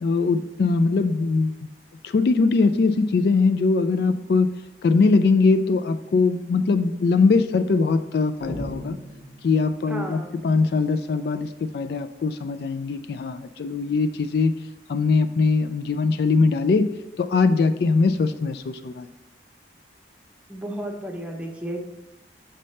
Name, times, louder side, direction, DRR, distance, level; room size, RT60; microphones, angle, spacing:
voice 1, 0.0-1.6 2.0-4.5 4.8-9.0 9.4-14.5 14.9-16.9 17.2-19.1, left 4 dB, 60° left, 10 dB, 0.3 m, -21 dB
sound 1, 8.4-10.0, equal, 80° left, 2.0 m, -37 dB
voice 2, 9.9-10.4 20.5-21.8, right 1 dB, 5° right, 1 dB, 0.8 m, -33 dB
6.5 x 5.5 x 3.2 m, 1.0 s
head